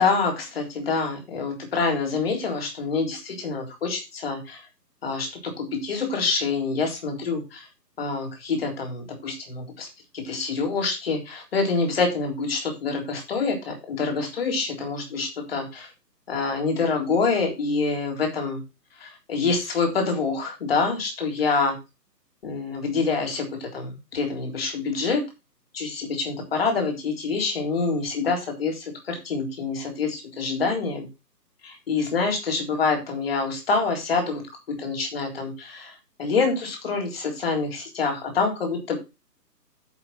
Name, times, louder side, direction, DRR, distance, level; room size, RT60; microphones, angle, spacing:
voice 1, 0.0-4.7 5.0-7.7 8.0-9.9 10.1-15.9 16.3-18.6 19.0-21.7 22.4-25.2 25.7-31.1 31.6-39.0, left 4 dB, 35° left, 2 dB, 3.8 m, -26 dB
9.7 x 6.9 x 4.4 m, 0.27 s
hypercardioid pair, 165°, 50 cm